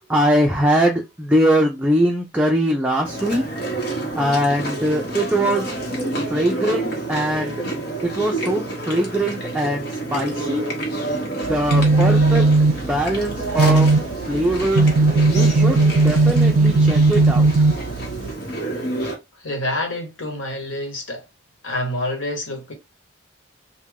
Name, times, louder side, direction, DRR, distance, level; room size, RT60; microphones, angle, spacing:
voice 1, 0.1-3.5 4.1-5.7 6.3-7.6 8.0-10.7 11.4-12.5 12.7-13.9 14.3-14.9 15.3-17.7, equal, 5° right, 0.4 m, -21 dB
Chewing mastication, 3.0-19.1, right 2 dB, 50° left, 1.0 m, -28 dB
sound 1, 11.4-18.3, right 3 dB, 85° right, 0.4 m, -17 dB
voice 2, 19.4-21.2 21.6-22.7, left 1 dB, 75° left, 1.2 m, -27 dB
3.4 x 2.2 x 3.5 m
head